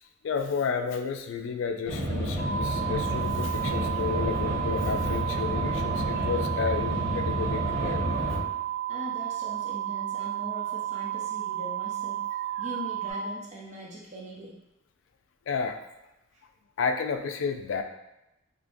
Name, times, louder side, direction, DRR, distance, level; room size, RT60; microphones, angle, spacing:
voice 1, 0.2-8.4 15.5-15.8 16.8-17.8, left 5 dB, 75° left, 6 dB, 0.3 m, -31 dB
sound 1, 1.8-8.4, equal, 70° right, 1.5 m, -30 dB
sound 2, 2.4-13.1, right 12 dB, 15° left, 0.9 m, -32 dB
voice 2, 8.9-12.2 12.6-14.5, equal, 35° right, -4 dB, 0.6 m, -41 dB
3.6 x 2.8 x 2.6 m, 0.90 s
head